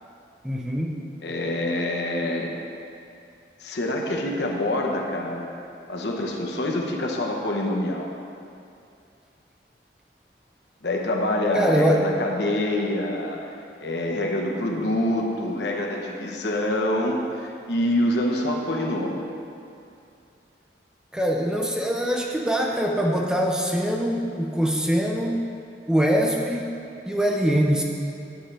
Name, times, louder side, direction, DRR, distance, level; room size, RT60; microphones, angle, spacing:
voice 1, 0.4-0.9 11.5-12.0 21.1-25.5 25.9-26.7 27.1-27.8, equal, 5° right, -1 dB, 0.5 m, -23 dB
voice 2, 1.2-2.5 3.6-5.5 5.9-8.1 10.8-13.5 13.8-19.2, left 1 dB, 75° left, 0 dB, 0.9 m, -26 dB
10.0 x 7.3 x 3.4 m, 2.5 s
head